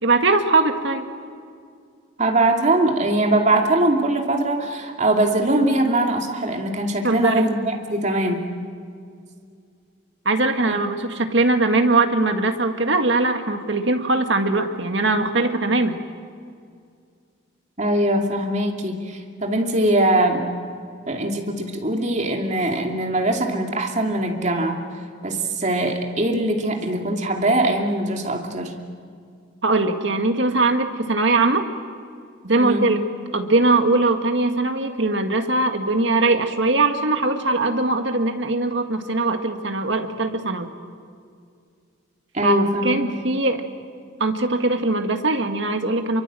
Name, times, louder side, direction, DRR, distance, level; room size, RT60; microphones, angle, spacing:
voice 1, 0.0-1.1 7.0-7.5 10.3-16.0 29.6-31.6 32.4-33.0 33.3-40.7 42.4-43.6 44.2-46.2, right 2 dB, 60° right, 6 dB, 1.9 m, -21 dB
voice 2, 2.2-8.5 17.8-20.5 21.1-24.8 25.2-28.7 32.6-32.9 42.3-43.0, right 1 dB, 35° right, 2 dB, 2.6 m, -21 dB
27.5 x 23.5 x 7.7 m, 2.3 s
head